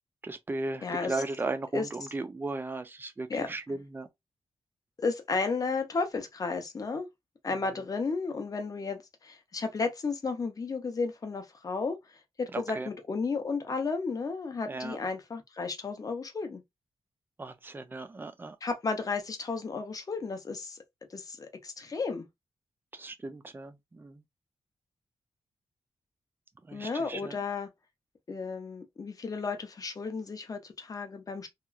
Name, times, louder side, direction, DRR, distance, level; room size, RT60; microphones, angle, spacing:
voice 1, 0.2-4.1 12.5-12.9 14.7-15.0 17.4-18.6 22.9-24.2 26.7-27.3, right 2 dB, 20° right, 0.3 m, -36 dB
voice 2, 0.8-1.2 1.7-1.9 3.3-3.8 5.0-7.1 7.4-12.0 12.4-16.6 18.6-20.8 21.1-22.3 26.7-27.7 28.3-31.5, left 4 dB, 35° left, 0.5 m, -33 dB
2.9 x 2.3 x 2.3 m
wide cardioid pair, 175°, 11 cm